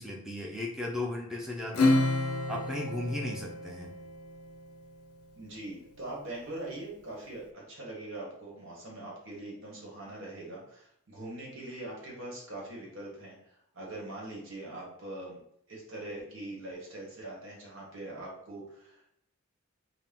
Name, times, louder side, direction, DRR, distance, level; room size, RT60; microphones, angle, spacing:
voice 1, 0.0-2.0 2.5-3.9, left 1 dB, ahead, -2 dB, 0.5 m, -35 dB
Acoustic guitar / Strum, 1.7-4.7, left 2 dB, 85° left, 0.5 m, -29 dB
voice 2, 5.3-13.4 13.7-15.4 15.7-19.2, right 2 dB, 60° right, -3 dB, 1.2 m, -42 dB
4.1 x 2.1 x 3.7 m, 0.74 s
head